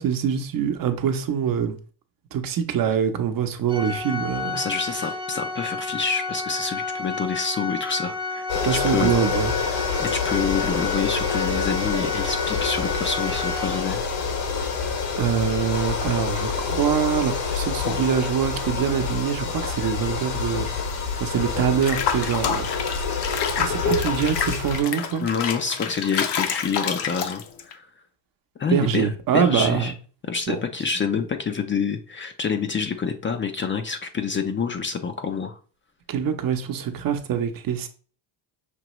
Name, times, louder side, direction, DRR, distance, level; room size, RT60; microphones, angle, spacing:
voice 1, 0.0-1.8 2.3-4.6 8.6-9.5 15.2-20.7 21.2-22.7 23.6-25.2 28.7-29.9 30.5-30.6 36.1-37.9, right 8 dB, 45° right, 0.9 m, -24 dB
Organ, 3.7-14.3, left 3 dB, 10° right, 0.7 m, -31 dB
voice 2, 4.5-9.1 9.7-14.0 25.2-27.9 28.6-29.9 30.3-35.6, left 5 dB, 25° left, 0.5 m, -27 dB
sound 1, 8.5-24.8, left 5 dB, 75° left, 1.6 m, -27 dB
Water / Bathtub (filling or washing), 21.8-27.7, left 8 dB, 60° left, 0.9 m, -28 dB
6.1 x 2.9 x 3.0 m
supercardioid pair, 100°, 46 cm